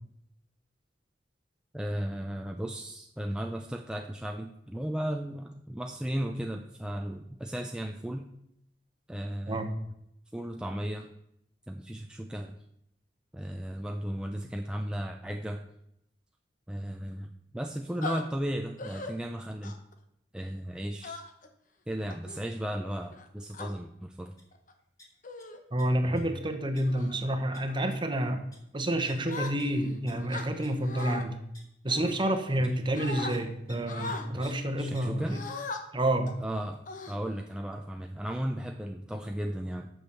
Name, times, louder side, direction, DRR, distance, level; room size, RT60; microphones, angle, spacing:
voice 1, 1.7-8.3 9.1-9.7 10.3-11.1 11.7-12.6 13.3-15.6 16.7-19.8 20.3-21.2 21.9-24.3 26.0-26.2 34.3-35.4 36.4-39.9, equal, 5° right, 3 dB, 0.4 m, -35 dB
sound 1, 18.0-18.2 18.8-19.1 19.6-19.9 21.0-21.5 22.1-22.4 23.1-23.7 24.5-24.7 25.2-25.6 26.1-26.3 26.8-27.2 27.7-27.9 29.3-29.9 30.3-31.2 31.9-32.7 33.0-33.3 33.9-34.3 35.3-35.8 36.3-36.4 36.9-37.5, left 3 dB, 50° left, 1.0 m, -39 dB
sound 2, 24.4-24.5 24.8-25.4 25.8-26.2 26.8-26.9 27.1-27.2 27.5-27.6 27.9-28.1 28.5-28.6 29.1-29.2 29.6-29.7 30.1-30.2 30.6-30.7 31.0-31.1 31.5-31.6 32.1-32.2 33.3-33.4 33.7-33.8 34.0-34.1 34.4-34.5 34.9-35.0, left 1 dB, 25° left, 2.8 m, -52 dB
voice 2, 25.7-28.4 28.7-31.4 31.8-35.4 35.9-36.3, right 1 dB, 30° right, 6 dB, 1.1 m, -29 dB
8.1 x 6.3 x 6.9 m, 0.78 s
head